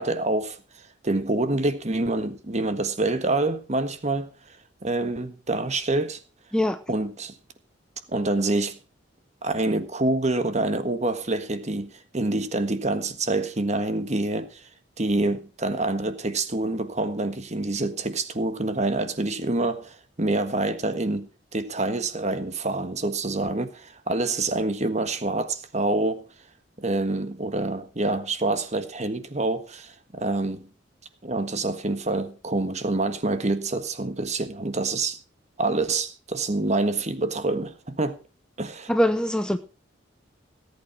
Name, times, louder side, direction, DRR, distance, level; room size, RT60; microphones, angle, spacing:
voice 1, 0.0-4.6 4.8-6.2 6.9-7.3 8.1-8.8 9.4-14.7 15.0-21.3 21.5-26.2 26.8-30.7 31.2-35.2 35.6-38.2 38.6-38.9, right 2 dB, 35° right, 1.5 m, -26 dB
voice 2, 38.9-39.6, equal, 5° left, 0.7 m, -22 dB
18.5 x 8.7 x 4.5 m
head